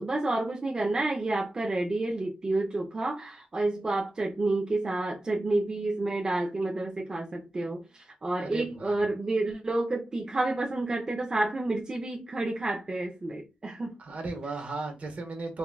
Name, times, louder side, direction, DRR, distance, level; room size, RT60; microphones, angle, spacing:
voice 1, 0.0-14.0, right 2 dB, 25° right, 0.5 m, -30 dB
voice 2, 8.4-8.9 14.0-15.6, right 3 dB, 50° right, 0.9 m, -36 dB
3.6 x 2.2 x 2.2 m
wide cardioid pair, 115°, 3 cm